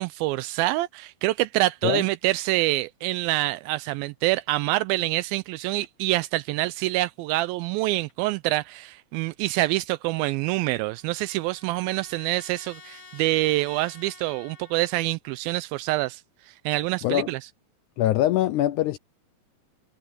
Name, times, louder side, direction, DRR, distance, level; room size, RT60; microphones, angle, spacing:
voice 1, 0.0-16.2 16.5-17.4, right 18 dB, 85° right, 2.4 m, -26 dB
Trumpet, 10.3-15.0, left 4 dB, 35° left, 4.1 m, -50 dB
voice 2, 18.0-19.0, left 13 dB, 85° left, 1.7 m, -23 dB
omnidirectional pair, 4.2 m